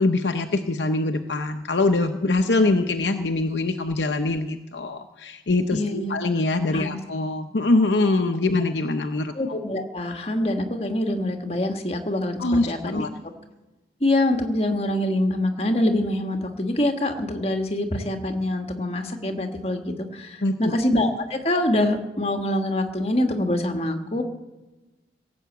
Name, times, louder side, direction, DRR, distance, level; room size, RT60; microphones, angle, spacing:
voice 1, 0.0-9.3 12.4-13.1 20.4-20.7, left 2 dB, 80° left, 5 dB, 0.8 m, -23 dB
voice 2, 5.7-6.2 6.7-7.0 9.3-13.0 14.0-24.2, left 1 dB, 35° left, 5 dB, 1.6 m, -25 dB
17.5 x 7.1 x 8.2 m, 1.1 s
head